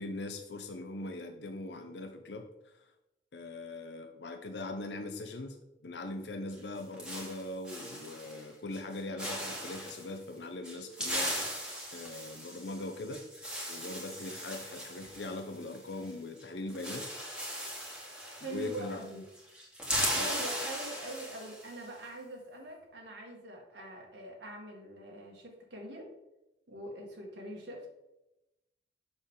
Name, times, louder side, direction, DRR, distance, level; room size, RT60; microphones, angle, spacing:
voice 1, 0.0-2.9 3.3-5.6 5.8-13.2 13.7-17.1 18.4-19.2 20.1-20.3, left 2 dB, 70° left, 5 dB, 0.7 m, -41 dB
sound 1, 6.5-8.4 8.7-8.9 9.2-10.1 10.6-16.1 16.4-16.5 16.7-19.1 19.3-21.8, equal, 5° right, 1.6 m, -38 dB
voice 2, 18.4-19.2 20.1-26.1 26.7-27.9, right 1 dB, 80° right, -1 dB, 2.1 m, -43 dB
7.2 x 6.4 x 3.8 m, 0.93 s
head